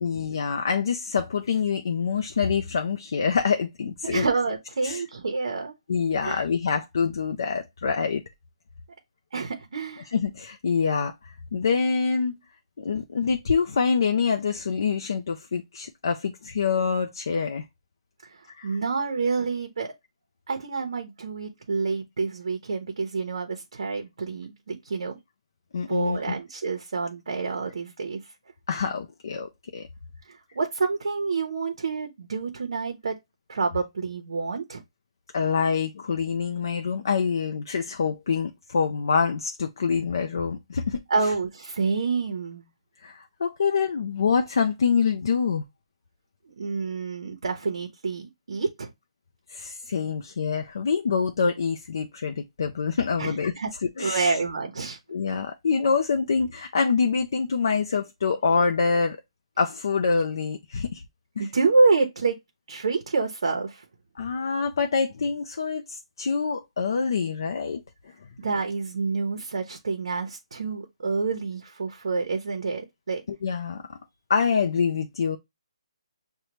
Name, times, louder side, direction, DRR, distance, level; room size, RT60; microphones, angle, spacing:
voice 1, 0.0-4.3 4.8-5.0 5.9-8.2 10.1-12.4 12.8-17.6 18.6-18.8 25.7-26.3 28.7-29.9 35.3-41.0 43.0-45.7 49.5-53.5 54.0-54.4 55.1-59.2 59.6-61.0 61.4-61.5 64.2-67.8 73.3-74.0 74.3-75.4, left 5 dB, 40° left, 0.4 m, -26 dB
voice 2, 4.0-5.7 6.2-6.4 9.3-10.1 18.3-19.9 20.5-25.2 25.9-28.2 30.3-33.2 33.5-34.8 41.1-42.6 46.6-48.9 53.2-53.7 54.0-55.0 61.4-62.4 62.7-63.8 68.4-73.2, right 4 dB, 55° right, 0.8 m, -28 dB
6.3 x 2.2 x 2.9 m
hypercardioid pair, 180°, 3 cm